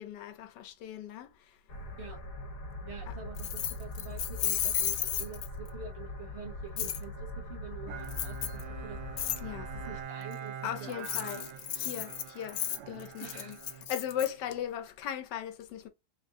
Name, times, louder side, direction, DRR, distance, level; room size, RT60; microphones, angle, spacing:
voice 1, 0.0-1.6 3.1-3.2 9.4-9.8 10.6-11.5 11.7-13.6 13.9-15.9, left 10 dB, 90° left, 1.3 m, -38 dB
sound 1, 1.7-10.0, left 1 dB, 55° left, 1.6 m, -42 dB
voice 2, 2.9-9.0 9.8-10.5 10.8-11.4 13.2-13.6, right 5 dB, 45° right, 1.0 m, -46 dB
Keys jangling, 3.4-5.7 6.8-7.0 8.1-8.6 9.2-9.4 10.9-14.3, left 11 dB, 70° left, 0.8 m, -33 dB
Bowed string instrument, 7.9-14.5, right 8 dB, 85° right, 1.4 m, -45 dB
3.7 x 2.5 x 3.6 m
omnidirectional pair, 1.8 m